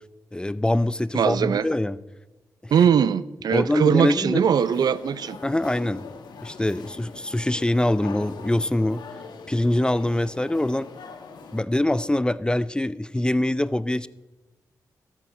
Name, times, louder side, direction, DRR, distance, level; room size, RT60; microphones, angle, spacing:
voice 1, 0.3-2.0 2.6-2.7 3.5-4.4 5.4-6.1 6.4-9.0 9.5-10.9 11.5-14.1, left 1 dB, 10° left, 18 dB, 0.4 m, -24 dB
voice 2, 1.1-1.7 2.7-5.4, right 7 dB, 70° right, 17 dB, 0.5 m, -21 dB
sound 1, 4.4-11.6, left 5 dB, 80° left, 1.3 m, -42 dB
12.5 x 8.1 x 6.1 m, 1.1 s
cardioid pair, 50°, 7 cm